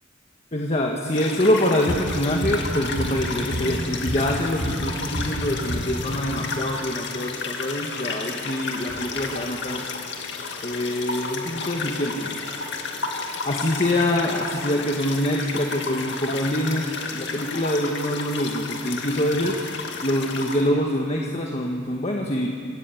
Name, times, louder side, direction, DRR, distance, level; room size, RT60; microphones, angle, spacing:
voice 1, 0.5-9.8 10.6-12.3 13.4-19.6 20.0-22.5, left 1 dB, 35° left, 0 dB, 1.6 m, -25 dB
sound 1, 1.1-20.7, left 4 dB, 65° left, 2.3 m, -32 dB
sound 2, 1.9-6.4, equal, 80° right, 4.5 m, -30 dB
26.5 x 13.5 x 8.5 m, 2.4 s
head